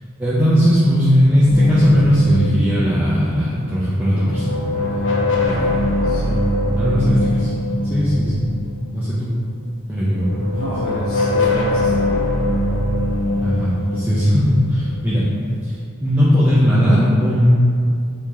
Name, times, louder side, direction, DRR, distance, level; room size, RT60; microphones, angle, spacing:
voice 1, 0.2-4.6 5.4-5.8 6.8-7.5 7.9-8.5 8.9-9.3 9.9-10.5 13.4-15.3 15.6-17.5, equal, 5° right, -10 dB, 0.4 m, -17 dB
sound 1, 1.5-3.7 4.1-9.2 10.1-15.6, left 1 dB, 60° left, 0.6 m, -22 dB
voice 2, 6.0-6.5 10.6-12.2, right 1 dB, 90° left, -8 dB, 1.1 m, -29 dB
3.0 x 2.8 x 3.5 m, 2.4 s
head